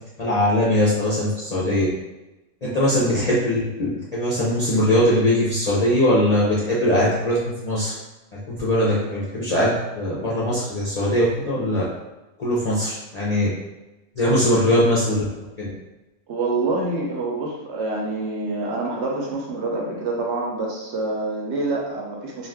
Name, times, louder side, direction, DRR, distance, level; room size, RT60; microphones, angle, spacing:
voice 1, 0.2-1.9 2.6-7.9 8.5-11.8 12.4-13.5 14.2-15.3 15.6-15.7, left 1 dB, 50° left, -8 dB, 0.5 m, -21 dB
voice 2, 14.2-14.6 16.3-22.5, right 2 dB, 65° right, -2 dB, 0.8 m, -27 dB
2.4 x 2.4 x 3.4 m, 1.0 s
omnidirectional pair, 1.3 m